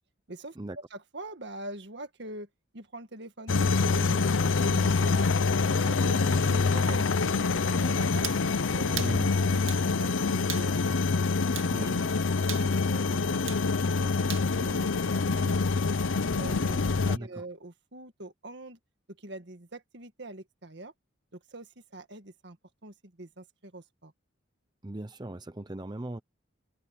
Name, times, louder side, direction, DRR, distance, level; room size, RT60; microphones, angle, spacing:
voice 1, 0.3-2.5 2.7-4.4 4.6-8.3 8.7-11.0 11.6-12.1 12.5-14.1 14.5-15.6 16.4-18.8 19.1-20.9 21.3-22.6 22.8-24.1, right 2 dB, 60° right, 1.9 m, -44 dB
sound 1, 3.5-17.2, left 4 dB, 75° left, 0.7 m, -26 dB
sound 2, 8.2-8.4 9.0-9.2 9.7-9.9 10.5-10.7 11.5-11.7 12.5-12.7 13.5-13.6 14.3-14.5, right 12 dB, 85° right, 2.1 m, -37 dB
voice 2, 8.9-9.3 11.7-12.0 17.0-17.4 24.8-26.2, right 1 dB, 20° right, 0.7 m, -38 dB
head